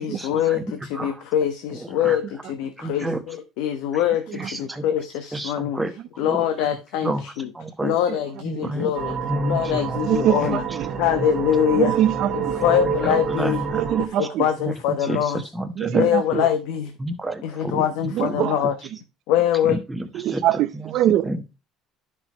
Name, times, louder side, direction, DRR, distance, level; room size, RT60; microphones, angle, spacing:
voice 1, 0.0-7.5 7.8-9.2 9.4-10.6 11.0-12.0 12.3-13.6 14.0-15.5 15.9-16.9 17.4-18.8 19.3-19.8, left 10 dB, 80° left, 1.0 m, -24 dB
voice 2, 2.8-3.2 4.7-4.8 5.3-5.9 6.3-6.4 7.0-7.2 7.5-7.9 8.4-8.9 9.2-10.0 10.4-10.6 13.0-13.9 15.1-15.2 15.5-16.1 17.0-17.8 19.7-19.8 20.3-20.4 20.7-20.9 21.2-21.6, right 1 dB, 5° right, 1.1 m, -28 dB
sound 1, 8.9-14.1, right 6 dB, 30° right, 1.4 m, -28 dB
voice 3, 10.0-10.4 11.7-12.6 13.7-14.4 15.8-16.5 18.1-18.5 20.1-21.3, right 12 dB, 55° right, 0.6 m, -22 dB
10.5 x 6.1 x 3.0 m
cardioid pair, 150°, 0 cm